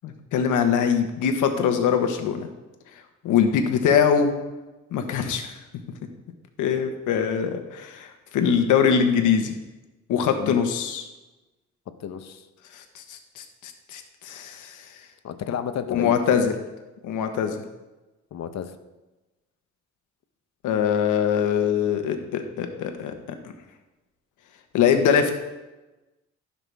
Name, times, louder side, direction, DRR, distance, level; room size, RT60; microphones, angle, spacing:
voice 1, 0.0-2.5 3.2-4.3 4.9-5.5 6.6-8.1 8.3-9.5 10.1-11.1 12.9-14.8 15.9-16.5 17.0-17.6 20.6-23.1 24.7-25.3, left 7 dB, 85° left, 6 dB, 1.3 m, -22 dB
voice 2, 12.0-12.5 15.2-16.5 18.3-18.7, left 8 dB, 60° left, 9 dB, 0.9 m, -32 dB
15.5 x 5.9 x 3.5 m, 1.1 s
cardioid pair, 90°, 30 cm